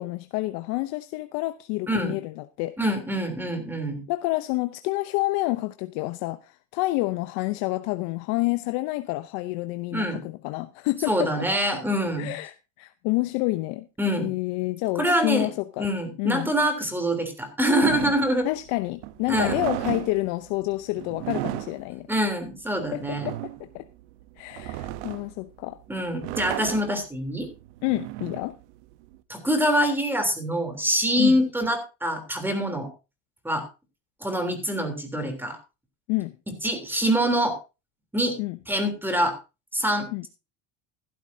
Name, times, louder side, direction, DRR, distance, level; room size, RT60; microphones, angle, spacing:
voice 1, 0.0-2.8 4.1-11.5 12.2-13.9 14.2-15.9 16.2-16.5 18.4-22.1 22.9-23.9 24.4-25.8 27.8-28.6 31.2-31.4 36.1-36.3 38.4-38.6 40.1-40.3, left 20 dB, 70° left, 0.8 m, -28 dB
voice 2, 2.8-4.0 9.9-10.2 11.1-12.3 14.0-14.3 15.0-15.5 15.8-18.5 19.3-19.6 22.1-23.3 25.9-27.5 29.3-32.9 33.4-33.7 34.2-35.6 36.6-37.6 38.1-38.4 38.7-39.4 39.7-40.3, equal, 5° right, 3.3 m, -25 dB
sound 1, 17.8-29.2, right 17 dB, 80° right, 0.9 m, -35 dB
14.0 x 12.5 x 2.7 m
supercardioid pair, 120°, 35 cm